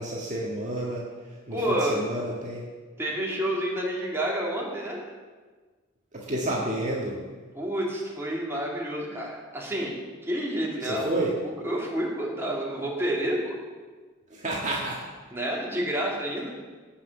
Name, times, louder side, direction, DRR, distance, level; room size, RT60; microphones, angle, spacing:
voice 1, 0.0-2.6 6.1-7.2 10.8-11.3 14.3-15.0, right 1 dB, 40° right, -3 dB, 1.7 m, -30 dB
voice 2, 1.5-2.0 3.0-5.0 7.5-9.9 10.2-13.5 15.3-16.5, right 1 dB, 15° right, -3 dB, 2.7 m, -29 dB
16.5 x 6.0 x 7.9 m, 1.4 s
head